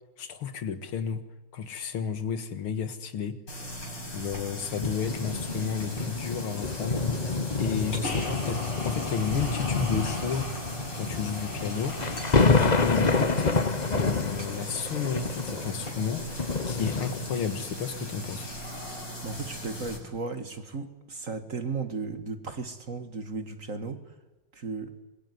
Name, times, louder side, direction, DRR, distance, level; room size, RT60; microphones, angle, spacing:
voice 1, 0.2-1.2 1.5-3.4 4.1-7.3 7.6-10.5 11.0-12.0 12.4-13.6 13.9-18.5, left 7 dB, 80° left, 10 dB, 2.5 m, -32 dB
sound 1, 3.5-20.0, equal, 55° left, 6.9 m, -38 dB
sound 2, 4.8-17.6 18.3-18.4, left 4 dB, 25° left, 1.0 m, -28 dB
voice 2, 18.9-24.1 24.5-24.9, right 4 dB, 40° right, 9 dB, 2.1 m, -35 dB
25.5 x 22.0 x 9.7 m, 1.1 s
omnidirectional pair, 2.3 m